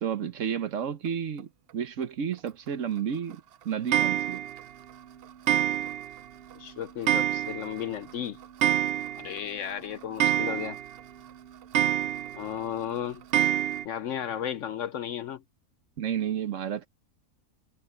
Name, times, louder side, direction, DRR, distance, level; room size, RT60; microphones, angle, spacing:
voice 1, 0.0-4.4 16.0-16.9, right 8 dB, 60° right, 1.3 m, -31 dB
Clock, 3.9-4.6 5.5-6.2 6.5-6.6 7.1-7.8 8.1-8.2 8.4-9.4 9.7-9.8 10.2-11.0 11.7-12.5 13.3-13.8, right 11 dB, 80° right, 0.5 m, -26 dB
voice 2, 6.5-8.4 9.2-10.8 12.3-13.2 13.8-15.4, left 9 dB, 65° left, 0.9 m, -34 dB
omnidirectional pair, 1.6 m